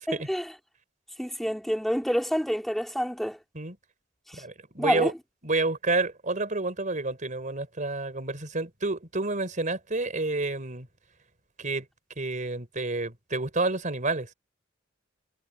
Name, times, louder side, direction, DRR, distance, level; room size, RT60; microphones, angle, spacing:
voice 1, 0.1-0.4 1.2-3.4 4.8-5.1, equal, ahead, 2.8 m, -27 dB
voice 2, 4.3-5.1 5.4-10.9 11.6-11.8 12.2-14.3, right 3 dB, 40° right, 4.1 m, -29 dB
head